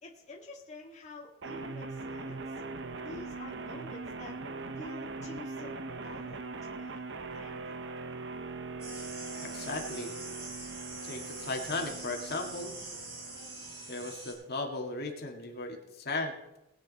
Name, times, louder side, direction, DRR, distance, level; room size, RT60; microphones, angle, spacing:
voice 1, 0.0-2.5 3.0-4.4 4.8-7.1 7.3-7.8, left 2 dB, 35° left, -2 dB, 1.8 m, -48 dB
sound 1, 1.4-14.4, right 3 dB, 60° right, 0.9 m, -41 dB
sound 2, 8.8-14.3, right 3 dB, 30° right, 5.9 m, -44 dB
voice 2, 9.4-10.1 11.0-12.7 13.9-16.6, left 2 dB, 55° left, 2 dB, 2.0 m, -36 dB
20.0 x 8.5 x 4.1 m, 0.93 s
head